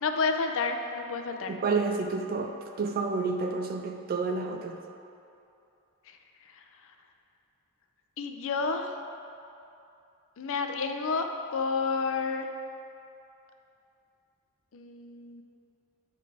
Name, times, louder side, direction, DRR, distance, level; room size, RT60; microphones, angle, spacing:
voice 1, 0.0-1.5 6.0-6.9 8.2-9.0 10.4-11.3 11.5-12.5 14.7-15.4, left 4 dB, 65° left, 5 dB, 0.5 m, -30 dB
voice 2, 1.5-4.8, right 4 dB, 40° right, 5 dB, 0.4 m, -30 dB
9.2 x 3.9 x 4.8 m, 2.7 s
head